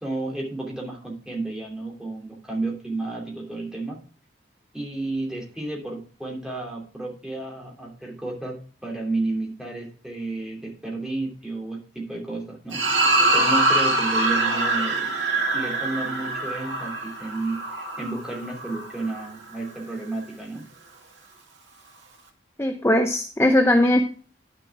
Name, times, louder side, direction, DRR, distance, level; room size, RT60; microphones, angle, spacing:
voice 1, 0.0-4.0 4.7-12.8 13.3-15.1 15.5-20.6, right 2 dB, 5° right, -2 dB, 2.8 m, -32 dB
sound 1, 12.7-19.3, right 2 dB, 80° right, 2.3 m, -24 dB
voice 2, 22.6-24.0, left 1 dB, 15° left, 5 dB, 0.7 m, -19 dB
10.5 x 6.8 x 4.8 m, 0.40 s
head